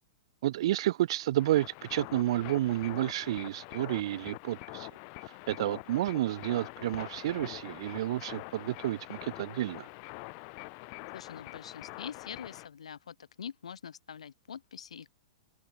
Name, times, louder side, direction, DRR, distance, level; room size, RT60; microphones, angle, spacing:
voice 1, 0.4-4.9 5.2-9.9, right 14 dB, 50° right, 0.9 m, -31 dB
sound 1, 1.4-12.7, left 40 dB or more, 40° left, 0.9 m, -45 dB
voice 2, 11.1-15.1, left 7 dB, 65° left, 1.0 m, -44 dB
figure-of-eight pair, 105°, 4 cm